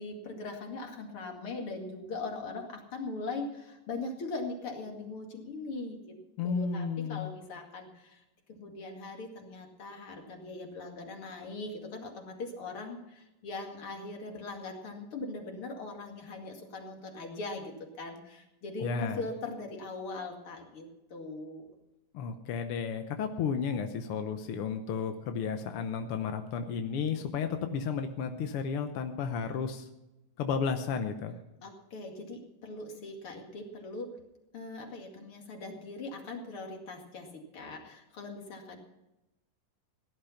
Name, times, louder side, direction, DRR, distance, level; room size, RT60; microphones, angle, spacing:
voice 1, 0.0-6.0 6.4-8.2 8.5-21.7 31.6-34.1 34.5-38.8, left 3 dB, 45° left, 2 dB, 2.9 m, -40 dB
voice 2, 6.4-7.3 18.8-19.2 22.1-29.9 30.4-31.3, left 6 dB, 70° left, 6 dB, 1.4 m, -33 dB
17.0 x 11.0 x 5.8 m, 0.94 s
omnidirectional pair, 3.6 m